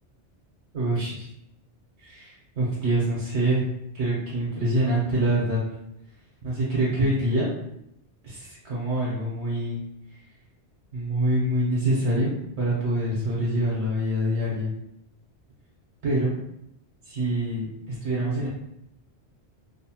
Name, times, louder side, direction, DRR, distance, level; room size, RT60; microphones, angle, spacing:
voice 1, 0.7-1.3 2.0-3.6 3.9-5.6 6.4-7.5 8.2-9.8 10.9-14.7 16.0-16.4 17.0-18.5, right 1 dB, 75° right, -6 dB, 1.0 m, -25 dB
2.7 x 2.1 x 2.8 m, 0.80 s
omnidirectional pair, 1.2 m